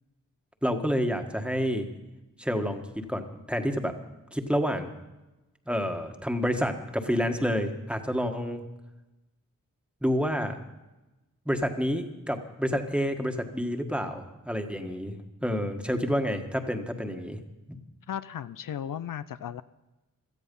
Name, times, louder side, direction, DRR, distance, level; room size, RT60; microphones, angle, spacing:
voice 1, 0.6-1.9 2.4-2.8 3.1-3.9 4.3-4.9 5.7-8.6 10.0-10.6 11.4-15.1 15.4-17.4 17.7-17.8, equal, 5° right, 5 dB, 1.5 m, -29 dB
voice 2, 18.1-19.6, left 9 dB, 80° left, 14 dB, 0.5 m, -35 dB
17.5 x 13.0 x 5.4 m, 1.0 s
wide cardioid pair, 80°, 32 cm